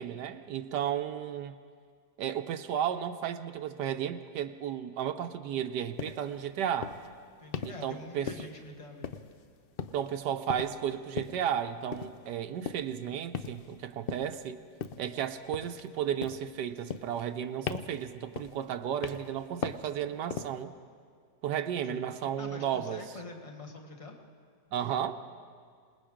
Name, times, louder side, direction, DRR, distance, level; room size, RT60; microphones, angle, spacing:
voice 1, 0.0-1.6 2.2-7.0 7.6-8.3 9.9-14.6 15.0-20.7 21.4-23.0 24.7-25.2, right 9 dB, 85° right, 7 dB, 1.3 m, -33 dB
sound 1, 6.0-6.2 6.8-7.1 7.5-7.8 8.3-8.7 9.0-9.5 9.8-10.1 10.5-10.8 11.2-11.4 11.9-12.2 12.7-13.0 13.3-13.7 14.1-14.4 14.8-15.1 15.5-15.9 16.2-16.5 16.9-17.4 17.7-18.0 18.4-18.7 19.0-19.3 19.6-19.9 20.3-20.6, left 7 dB, 70° left, 0.5 m, -38 dB
voice 2, 7.4-9.2 21.7-24.1, left 2 dB, 20° left, 3 dB, 1.5 m, -46 dB
27.0 x 19.5 x 5.0 m, 2.1 s
omnidirectional pair, 1.8 m